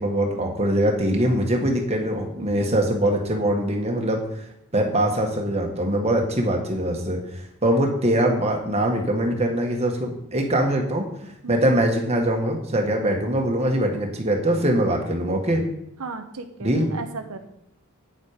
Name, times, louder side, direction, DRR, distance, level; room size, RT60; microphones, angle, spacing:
voice 1, 0.0-4.4 4.7-15.6 16.6-16.9, right 1 dB, 30° right, 1 dB, 1.5 m, -23 dB
voice 2, 16.0-17.5, right 3 dB, 85° right, 6 dB, 0.8 m, -36 dB
9.0 x 7.4 x 5.0 m, 0.77 s
head